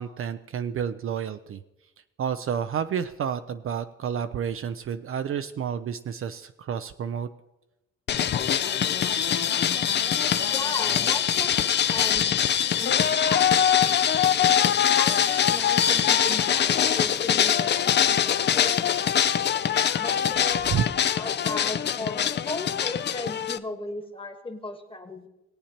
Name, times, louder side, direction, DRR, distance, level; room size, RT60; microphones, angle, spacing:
voice 1, 0.0-1.6 2.2-7.3 19.3-19.4 20.7-20.9, right 8 dB, 45° right, 10 dB, 0.4 m, -30 dB
sound 1, 8.1-23.6, left 9 dB, 35° left, 0.4 m, -23 dB
voice 2, 10.5-12.3 12.8-13.5 15.0-19.1 20.0-20.7 21.1-25.3, left 2 dB, 20° left, 6 dB, 1.3 m, -36 dB
19.0 x 8.5 x 2.9 m, 0.97 s
cardioid pair, 90°, 30 cm